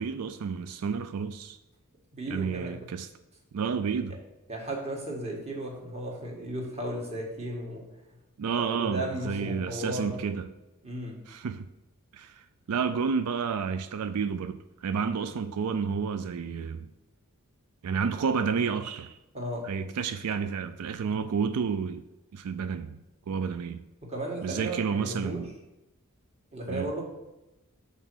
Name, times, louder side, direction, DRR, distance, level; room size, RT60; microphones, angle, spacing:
voice 1, 0.0-1.6 2.3-3.1 3.5-4.2 8.4-10.5 11.3-11.7 12.1-16.9 17.8-19.2 19.6-22.0 22.3-23.0 23.3-23.8 24.4-25.5 26.7-26.9, right 6 dB, 90° right, 0.4 m, -30 dB
voice 2, 2.1-2.7 4.1-4.2 4.5-7.8 8.6-10.2 10.8-11.2 19.3-19.7 24.0-25.4 26.5-27.0, right 1 dB, 30° right, 1.6 m, -35 dB
6.0 x 4.1 x 6.2 m
head